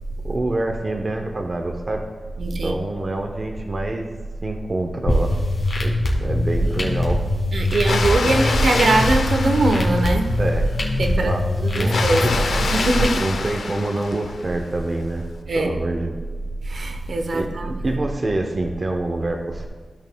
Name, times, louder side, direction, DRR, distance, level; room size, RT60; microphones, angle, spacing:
voice 1, 0.2-2.0 2.6-4.1 4.4-5.4 5.8-7.2 10.4-10.7 11.1-11.5 11.7-12.4 13.1-15.3 15.6-16.2 17.3-19.7, right 2 dB, 35° right, 3 dB, 0.6 m, -26 dB
voice 2, 2.4-2.8 7.5-10.3 11.0-11.3 11.6-12.2 12.7-13.1 15.5-15.7 16.7-17.7, right 2 dB, 60° right, 5 dB, 0.8 m, -21 dB
sound 1, 5.1-13.1, left 1 dB, 50° left, 1.7 m, -22 dB
Water, 7.7-10.5 11.8-14.6, left 4 dB, 80° left, 0.7 m, -26 dB
15.5 x 6.3 x 2.2 m, 1.4 s
wide cardioid pair, 160°, 0 cm